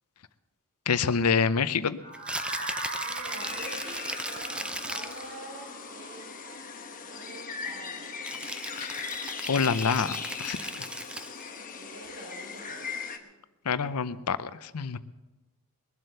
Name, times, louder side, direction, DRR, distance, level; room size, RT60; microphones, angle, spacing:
voice 1, 0.9-2.0 8.8-9.1 9.5-10.9 13.7-15.0, left 5 dB, 80° left, 14 dB, 0.7 m, -27 dB
sound 1, 2.0-7.9, right 2 dB, 55° right, 5.9 m, -41 dB
Rattle (instrument), 2.1-5.3 8.2-11.5, right 1 dB, 5° right, 0.5 m, -37 dB
voice 2, 2.9-6.3 7.0-8.4 11.5-13.3, right 2 dB, 75° right, -7 dB, 6.6 m, -46 dB
sound 2, 3.4-13.2, left 5 dB, 40° left, 1.1 m, -39 dB
21.5 x 7.7 x 6.7 m, 1.1 s
head